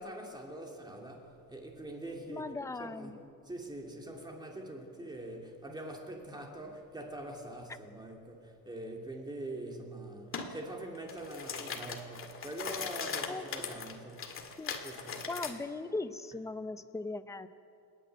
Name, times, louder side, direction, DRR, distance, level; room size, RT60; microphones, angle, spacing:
voice 1, 0.0-2.5 2.8-3.1 3.4-14.4 14.8-15.3, right 1 dB, 10° right, 2.7 m, -44 dB
voice 2, 2.3-3.2 13.3-13.7 14.6-14.8 15.3-17.5, left 3 dB, 10° left, 0.6 m, -39 dB
sound 1, 10.3-10.5 11.0-15.5, left 5 dB, 35° left, 2.0 m, -39 dB
29.5 x 10.0 x 9.1 m
cardioid pair, 150°, 36 cm